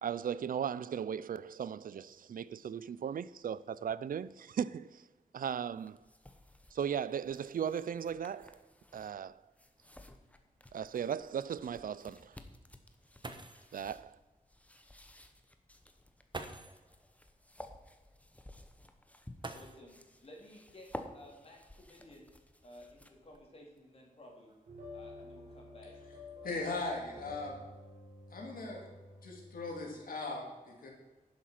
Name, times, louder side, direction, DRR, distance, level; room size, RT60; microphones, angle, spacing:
voice 1, 0.0-5.0 5.3-6.0 6.7-8.6 8.9-9.4 10.7-12.3 13.7-14.1, right 8 dB, 75° right, 0.4 m, -37 dB
sound 1, 5.7-23.4, left 1 dB, 10° left, 0.9 m, -54 dB
sound 2, 10.5-10.6 12.9-13.0 13.2-13.8 15.1-15.2 16.3-16.9 19.4-20.1 21.5-21.6 22.3-23.8 24.5-24.8 25.2-25.6, right 3 dB, 35° right, 1.0 m, -48 dB
voice 2, 19.5-20.0 20.2-22.3 22.6-24.5 24.9-25.9 26.4-26.9, left 1 dB, 45° left, 3.4 m, -55 dB
sound 3, 24.7-29.8, left 1 dB, 60° right, 3.9 m, -51 dB
voice 3, 26.4-27.6 28.3-28.8 29.2-30.9, left 3 dB, 85° left, 2.8 m, -39 dB
11.0 x 7.4 x 5.8 m
wide cardioid pair, 115°, 14 cm